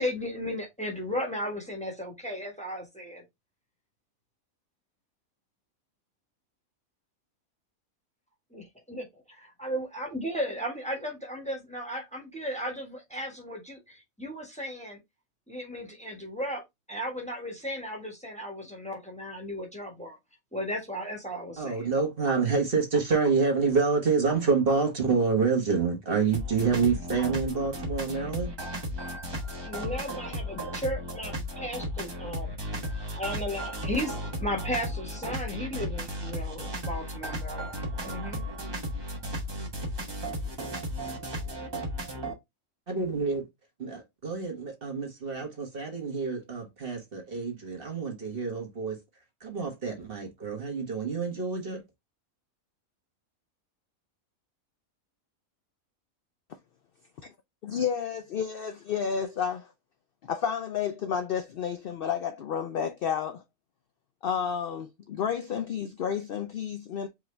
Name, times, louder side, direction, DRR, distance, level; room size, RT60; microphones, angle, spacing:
voice 1, 0.0-3.2 8.5-15.0 15.5-16.6 16.9-20.2 20.5-21.9 29.6-32.5 33.1-37.7 38.0-38.4, equal, 5° left, 1.1 m, -35 dB
voice 2, 21.6-28.5 42.9-43.5 43.8-49.0 49.4-51.8, right 4 dB, 40° right, 1.5 m, -27 dB
sound 1, 26.3-42.3, equal, 25° right, 0.7 m, -35 dB
voice 3, 57.6-59.7 60.2-63.4 64.2-67.1, left 7 dB, 70° left, 0.5 m, -31 dB
4.8 x 2.7 x 3.2 m
omnidirectional pair, 1.5 m